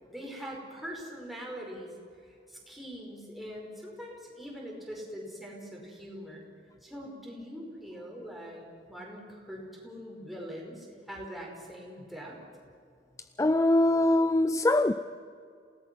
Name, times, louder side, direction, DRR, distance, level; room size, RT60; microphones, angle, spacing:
voice 1, 0.1-1.9 2.5-6.5 6.8-12.4, equal, ahead, 5.1 m, -42 dB
voice 2, 13.4-14.9, left 1 dB, 20° left, 0.4 m, -23 dB
28.0 x 18.0 x 6.2 m
head